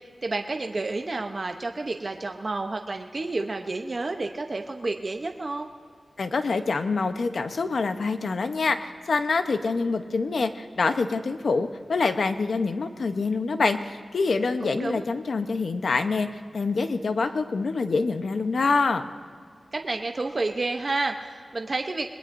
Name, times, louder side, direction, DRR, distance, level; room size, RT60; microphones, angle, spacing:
voice 1, 0.0-5.7 14.6-15.1 19.7-22.1, right 3 dB, 45° right, 4 dB, 0.8 m, -30 dB
voice 2, 6.2-16.3 16.5-19.1, left 4 dB, 75° left, 8 dB, 0.9 m, -26 dB
26.0 x 20.5 x 2.6 m, 2.1 s
wide cardioid pair, 90°, 0 cm